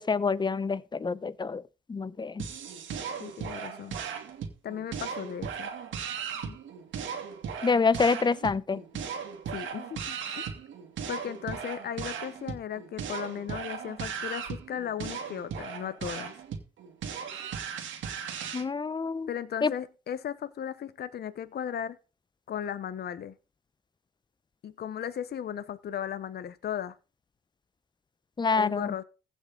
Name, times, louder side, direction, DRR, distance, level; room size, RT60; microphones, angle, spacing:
voice 1, 0.0-1.6 1.9-2.4 7.6-8.8 18.5-19.3 19.6-19.7 28.4-28.9, left 4 dB, 20° left, 0.7 m, -27 dB
sound 1, 2.4-18.6, right 7 dB, 75° right, 2.7 m, -37 dB
voice 2, 3.2-4.0 4.6-5.7 6.3-6.6 9.5-10.4 11.1-16.4 19.3-22.0 22.5-23.3 24.6-26.9 28.5-29.0, left 9 dB, 55° left, 0.9 m, -36 dB
15.5 x 6.3 x 3.9 m
cardioid pair, 90°, 20 cm